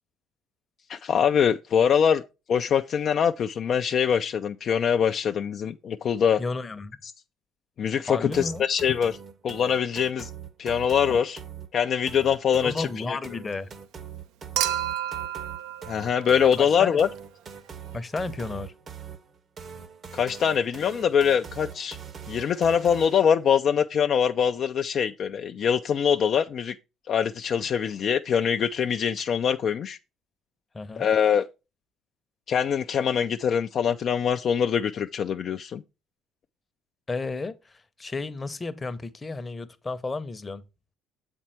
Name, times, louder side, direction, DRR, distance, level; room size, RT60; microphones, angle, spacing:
voice 1, 0.9-2.2 2.5-6.4 7.8-9.2 9.4-10.3 10.6-11.4 11.7-13.2 15.9-17.1 20.1-22.0 22.3-26.7 27.1-30.0 31.0-31.5 32.5-35.8, left 7 dB, 55° left, 0.3 m, -23 dB
voice 2, 6.4-7.0 8.1-8.6 12.6-13.7 16.4-17.0 17.9-18.7 30.7-31.1 37.1-40.6, left 3 dB, 25° left, 0.7 m, -33 dB
sound 1, 8.3-23.3, right 7 dB, 45° right, 0.8 m, -42 dB
Human group actions / Chink clink / Liquid, 14.6-16.9 18.4-18.5, right 11 dB, 75° right, 0.4 m, -31 dB
7.2 x 4.4 x 4.4 m
supercardioid pair, 70°, 0 cm